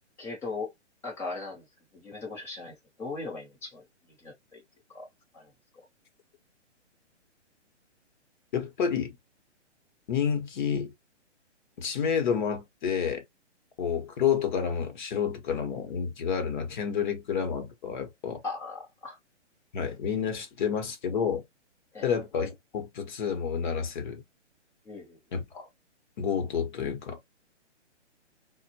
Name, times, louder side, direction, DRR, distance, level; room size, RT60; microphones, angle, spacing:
voice 1, 0.2-0.7 1.0-1.6 1.9-3.8 4.2-4.6 4.9-5.1 5.3-5.5 18.4-19.2 21.9-22.1 24.8-25.2, left 3 dB, 5° left, 0.7 m, -38 dB
voice 2, 8.5-9.2 10.1-10.9 11.8-13.2 13.8-18.4 19.7-21.4 22.0-24.2 25.3-25.7 26.2-27.2, left 7 dB, 40° left, 0.9 m, -29 dB
4.1 x 2.1 x 2.7 m
hypercardioid pair, 150°, 36 cm